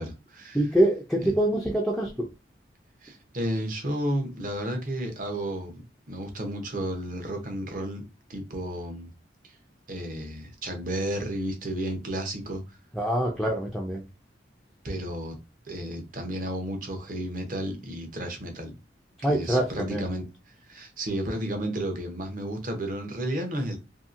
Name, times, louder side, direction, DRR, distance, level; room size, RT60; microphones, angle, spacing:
voice 1, 0.0-0.7 1.2-1.3 3.0-8.0 8.3-9.1 9.4-9.6 9.9-12.8 14.8-15.4 15.6-18.7 19.3-20.3 20.7-23.8, right 1 dB, 45° right, 0.7 m, -32 dB
voice 2, 0.5-2.3 13.0-14.0 19.2-20.0, right 1 dB, ahead, 0.3 m, -25 dB
2.7 x 2.7 x 2.5 m
head